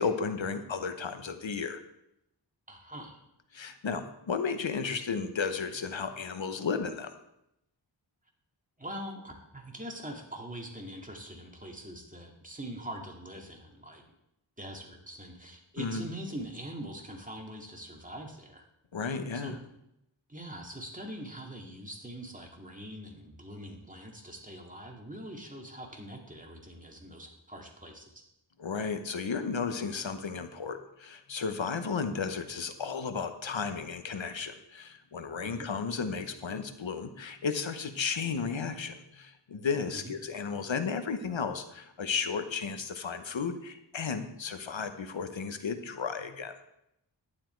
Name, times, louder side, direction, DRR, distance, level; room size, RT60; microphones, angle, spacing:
voice 1, 0.0-1.8 3.5-7.1 15.8-16.1 18.9-19.6 28.6-46.6, left 5 dB, 85° left, 9 dB, 1.0 m, -34 dB
voice 2, 2.7-3.2 8.8-14.0 14.6-18.7 19.3-19.6 20.3-28.3 35.4-35.7 39.9-40.1, right 1 dB, 15° right, 1 dB, 2.3 m, -43 dB
11.5 x 10.0 x 4.5 m, 0.82 s
wide cardioid pair, 70°, 45 cm